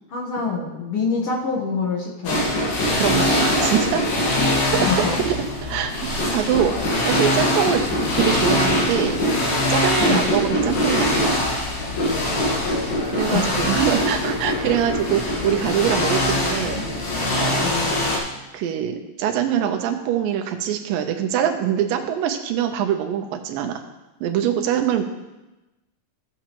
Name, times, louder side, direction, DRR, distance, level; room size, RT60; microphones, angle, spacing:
voice 1, 0.1-2.4 4.8-5.2 10.0-10.3 13.3-13.7 14.5-14.6 17.6-17.9, left 4 dB, 65° left, -2 dB, 1.4 m, -26 dB
sound 1, 2.3-18.2, left 1 dB, 90° left, 3.5 m, -22 dB
voice 2, 2.9-4.1 4.7-4.9 5.3-5.4 5.6-5.9 6.2-7.8 8.2-9.2 9.7-11.5 13.1-16.8 17.3-17.6 18.5-23.8 24.2-25.0, right 9 dB, 80° right, 5 dB, 2.4 m, -23 dB
14.0 x 7.2 x 3.0 m, 1.0 s
omnidirectional pair, 4.1 m